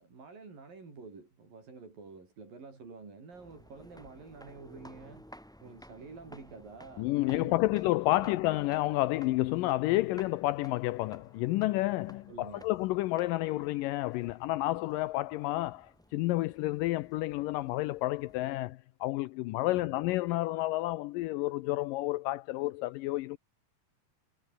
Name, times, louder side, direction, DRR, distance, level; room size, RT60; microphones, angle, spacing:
voice 1, 0.0-5.3 5.6-7.8 8.1-8.4 12.3-12.7 19.7-20.0, right 4 dB, 70° right, 8.8 m, -49 dB
sound 1, 3.3-18.6, equal, ahead, 4.5 m, -56 dB
voice 2, 7.0-23.4, left 18 dB, 80° left, 2.2 m, -30 dB
omnidirectional pair, 4.1 m